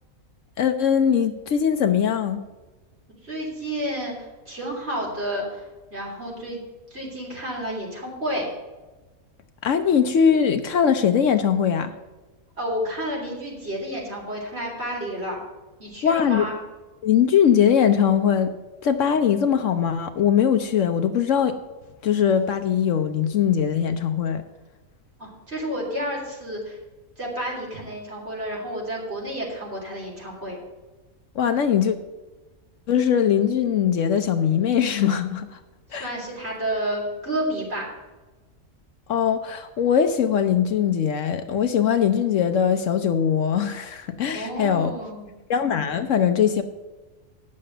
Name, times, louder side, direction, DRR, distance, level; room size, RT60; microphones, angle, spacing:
voice 1, 0.6-2.4 9.6-11.9 16.0-16.5 17.0-18.5 18.8-21.6 22.0-24.4 31.3-32.0 32.9-35.6 35.9-36.1 39.1-44.9 45.5-46.6, left 8 dB, 65° left, 8 dB, 1.0 m, -21 dB
voice 2, 3.2-6.6 6.9-8.5 12.6-15.4 15.8-16.6 25.2-26.8 27.2-30.6 35.9-37.9 44.3-45.3, equal, 45° right, -3 dB, 3.5 m, -30 dB
9.6 x 6.5 x 7.7 m, 1.2 s
omnidirectional pair, 1.5 m